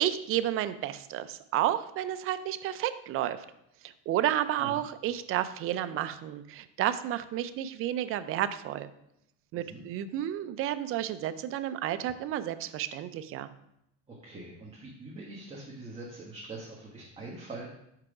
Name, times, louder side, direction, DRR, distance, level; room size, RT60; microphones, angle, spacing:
voice 1, 0.0-3.5 4.1-8.9 9.5-13.5, right 12 dB, 45° right, 12 dB, 0.4 m, -31 dB
voice 2, 9.5-9.8 14.1-17.7, right 2 dB, 20° right, -5 dB, 1.2 m, -43 dB
4.9 x 4.7 x 4.7 m, 0.79 s
supercardioid pair, 115°, 33 cm